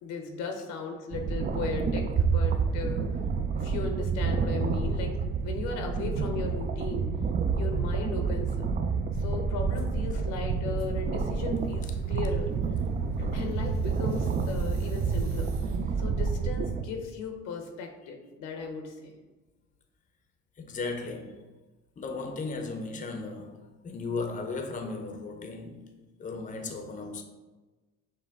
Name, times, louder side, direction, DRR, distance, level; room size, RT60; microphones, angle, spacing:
voice 1, 0.0-3.2 3.6-7.1 7.5-8.7 9.2-12.5 13.2-15.6 16.0-19.1, left 4 dB, 75° left, 0.8 m, -37 dB
sound 1, 1.1-16.8, right 5 dB, 30° right, 0.3 m, -29 dB
sound 2, 9.7-10.0 10.8-16.2, right 3 dB, 85° right, 1.5 m, -52 dB
voice 2, 20.6-21.5 22.0-27.2, left 3 dB, 25° left, 0.6 m, -36 dB
5.9 x 2.2 x 3.4 m
supercardioid pair, 75°, 31 cm